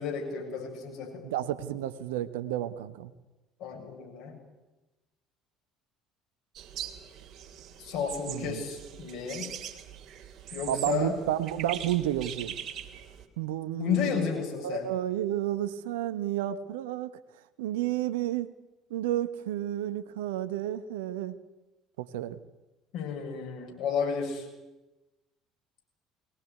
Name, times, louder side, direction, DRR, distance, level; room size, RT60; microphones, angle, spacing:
voice 1, 0.0-1.2 3.6-4.3 7.8-9.5 10.5-11.2 13.8-14.9 22.9-24.5, left 7 dB, 60° left, 1 dB, 7.1 m, -32 dB
voice 2, 1.2-3.1 8.3-8.6 10.7-12.6 13.4-14.3 14.6-17.1 17.6-18.5 18.9-21.4 22.0-22.4, right 12 dB, 70° right, 13 dB, 1.1 m, -31 dB
sound 1, 6.5-13.3, right 10 dB, 50° right, 3.1 m, -42 dB
22.0 x 19.0 x 9.6 m, 1.1 s
figure-of-eight pair, 60°, 0 cm